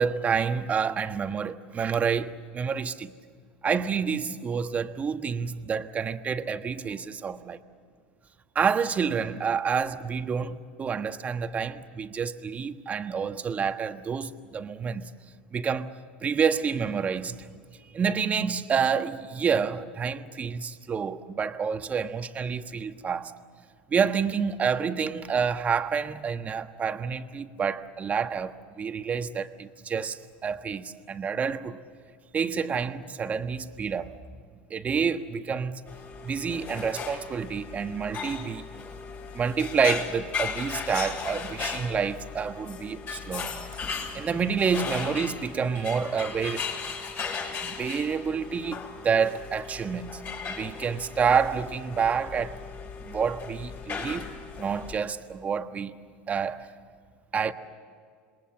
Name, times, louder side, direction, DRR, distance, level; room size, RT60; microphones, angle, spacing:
voice 1, 0.0-3.1 3.6-7.6 8.5-15.1 15.5-15.9 16.2-17.5 17.9-23.3 23.9-31.8 32.3-34.1 34.7-35.8 36.2-38.7 39.3-43.6 44.1-46.7 47.6-52.6 53.0-54.2 54.6-56.0 56.3-56.7 57.3-57.5, right 6 dB, 30° right, 1.4 m, -28 dB
sound 1, 35.9-55.0, left 5 dB, 40° left, 7.0 m, -37 dB
27.5 x 22.0 x 7.3 m
hypercardioid pair, 100°, 5 cm